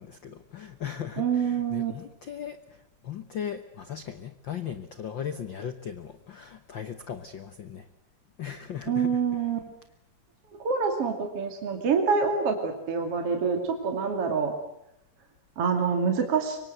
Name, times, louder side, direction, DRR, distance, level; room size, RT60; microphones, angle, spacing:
voice 1, 0.0-2.6 3.0-7.9 8.4-9.1, left 8 dB, 85° left, 10 dB, 1.0 m, -37 dB
voice 2, 1.2-1.9 8.9-9.6 10.6-14.5 15.6-16.6, right 5 dB, 45° right, 4 dB, 3.3 m, -26 dB
25.0 x 23.5 x 7.9 m, 0.81 s
omnidirectional pair, 3.9 m